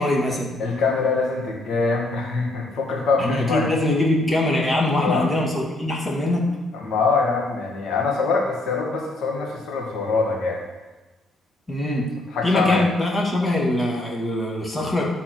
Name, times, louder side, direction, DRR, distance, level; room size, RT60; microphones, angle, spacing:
voice 1, 0.0-0.5 3.2-6.5 11.7-12.1 12.4-15.0, left 1 dB, 25° left, -1 dB, 2.1 m, -22 dB
voice 2, 0.6-3.7 5.0-5.3 6.7-10.7 12.3-12.8, left 4 dB, 75° left, -1 dB, 2.1 m, -23 dB
12.0 x 4.1 x 4.6 m, 1.2 s
cardioid pair, 90°, 0 cm